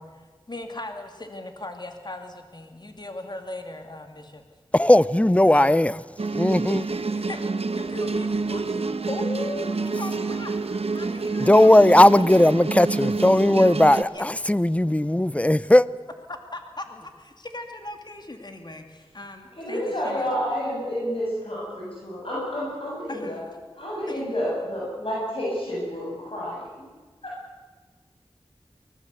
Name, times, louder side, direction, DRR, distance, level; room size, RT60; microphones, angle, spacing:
voice 1, 0.0-4.4 5.5-5.9 7.1-10.6 10.9-12.3 12.9-13.0 14.1-14.3 16.3-20.3 23.1-23.4, left 2 dB, 45° left, 2.7 m, -38 dB
voice 2, 4.7-5.9 6.3-6.8 11.4-15.9, left 1 dB, 15° left, 0.6 m, -17 dB
sound 1, 6.2-14.0, right 3 dB, 80° right, 1.1 m, -28 dB
voice 3, 19.5-23.4 23.7-26.8 27.2-27.3, equal, 65° left, 8.0 m, -30 dB
24.5 x 20.0 x 8.2 m
wide cardioid pair, 60°, 10 cm